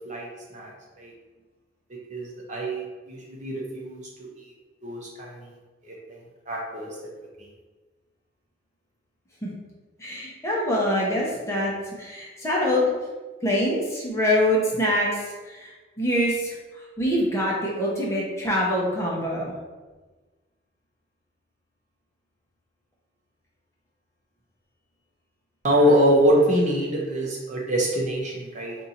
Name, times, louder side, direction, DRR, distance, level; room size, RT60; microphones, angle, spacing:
voice 1, 0.0-0.7 1.0-1.1 2.1-4.5 4.8-5.5 5.8-6.2 6.5-6.9 7.4-7.5 25.6-28.7, equal, 40° right, -3 dB, 0.8 m, -24 dB
voice 2, 10.0-11.7 12.0-12.9 13.4-15.1 15.4-15.7 16.0-16.6 17.0-19.5, left 1 dB, 15° left, -5 dB, 0.9 m, -24 dB
4.3 x 2.7 x 4.3 m, 1.3 s
head